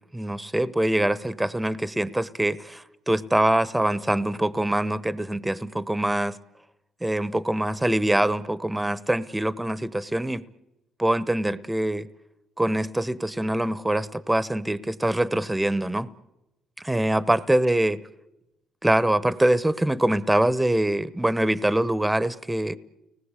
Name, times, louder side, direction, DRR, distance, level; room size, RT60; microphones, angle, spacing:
voice 1, 0.1-6.4 7.0-10.4 11.0-12.1 12.6-16.1 16.8-18.0 18.8-22.8, right 1 dB, 10° right, 0.9 m, -24 dB
30.0 x 19.5 x 8.2 m
cardioid pair, 90°, 0 cm